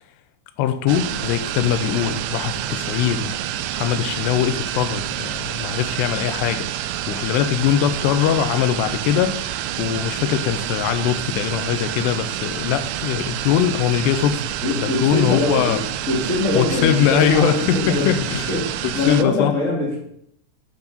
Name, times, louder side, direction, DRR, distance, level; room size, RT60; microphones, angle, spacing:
voice 1, 0.6-3.3 3.7-15.8 16.5-18.5 18.8-19.5, left 10 dB, 85° left, 2.7 m, -22 dB
sound 1, 0.9-19.2, right 12 dB, 85° right, 2.2 m, -28 dB
voice 2, 14.6-20.0, left 2 dB, 30° left, 1.6 m, -23 dB
8.2 x 7.1 x 5.3 m
omnidirectional pair, 5.1 m